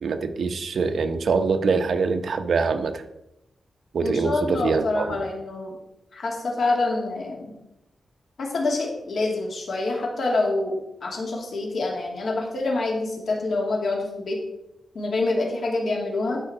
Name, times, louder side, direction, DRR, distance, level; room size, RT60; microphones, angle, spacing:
voice 1, 0.0-3.0 3.9-5.2, right 4 dB, 65° right, 7 dB, 0.8 m, -24 dB
voice 2, 4.0-5.8 6.1-7.5 8.4-10.8 11.0-14.4 14.9-16.4, left 2 dB, 65° left, -1 dB, 2.4 m, -26 dB
11.5 x 4.9 x 4.3 m, 0.87 s
wide cardioid pair, 150°, 0 cm